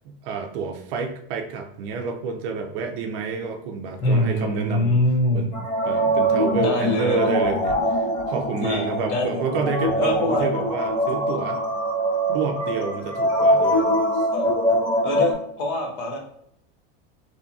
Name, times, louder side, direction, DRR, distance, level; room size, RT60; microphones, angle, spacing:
voice 1, 0.0-5.0 5.3-5.6 5.8-11.6 12.3-13.9, right 4 dB, 60° right, 5 dB, 0.5 m, -29 dB
voice 2, 4.0-5.5 6.6-7.3 8.6-9.6 10.0-10.5 14.1-14.5 15.0-16.2, left 1 dB, 45° left, 1 dB, 0.7 m, -24 dB
sound 1, 5.5-15.3, equal, 90° left, 1.2 m, -23 dB
2.7 x 2.6 x 2.3 m, 0.73 s
supercardioid pair, 160°, 30 cm